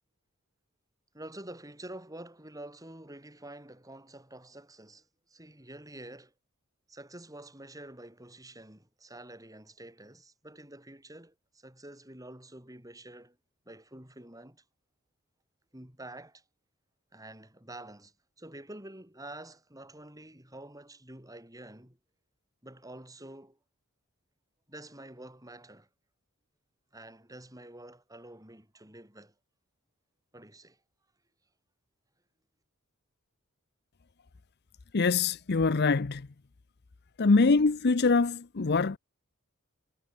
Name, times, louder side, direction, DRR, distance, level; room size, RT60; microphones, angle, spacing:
voice 1, 1.1-6.3 6.9-13.4 13.7-14.6 15.7-16.4 17.1-22.0 22.6-23.6 24.7-25.9 26.9-29.3 30.3-30.8, right 1 dB, 15° right, 6.9 m, -48 dB
voice 2, 34.9-36.3 37.2-39.0, left 4 dB, 45° left, 0.6 m, -24 dB
head